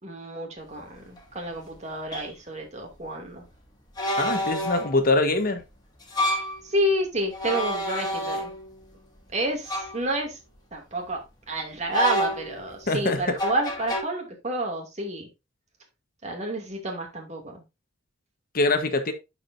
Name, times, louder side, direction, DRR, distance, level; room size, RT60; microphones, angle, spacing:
voice 1, 0.0-3.4 6.2-8.5 9.3-10.4 10.7-15.3 16.2-17.6, right 1 dB, 35° right, 2.5 m, -29 dB
sound 1, 1.2-1.3 2.1-2.3 4.0-5.0 6.0-6.6 7.3-8.8 9.7-10.0 11.9-12.7 13.4-14.0, equal, 20° left, 2.5 m, -28 dB
voice 2, 4.2-5.6 12.9-13.3 18.5-19.1, left 2 dB, 45° left, 1.2 m, -23 dB
11.5 x 5.0 x 2.6 m
head